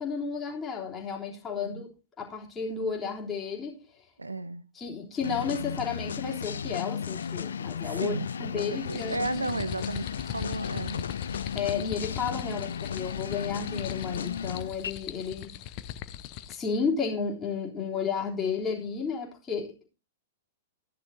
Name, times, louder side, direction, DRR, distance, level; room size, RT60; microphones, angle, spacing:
voice 1, 0.0-1.9 2.2-3.8 4.7-9.2 11.5-15.5 16.5-19.9, left 5 dB, 20° left, 3.3 m, -32 dB
voice 2, 4.2-4.6 7.8-11.0 12.5-12.7, right 3 dB, 80° right, 0.6 m, -34 dB
sound 1, 5.2-14.9, left 7 dB, 65° left, 0.5 m, -35 dB
sound 2, 8.8-16.7, left 11 dB, 35° left, 0.8 m, -40 dB
14.5 x 10.5 x 2.7 m
figure-of-eight pair, 100°, 0 cm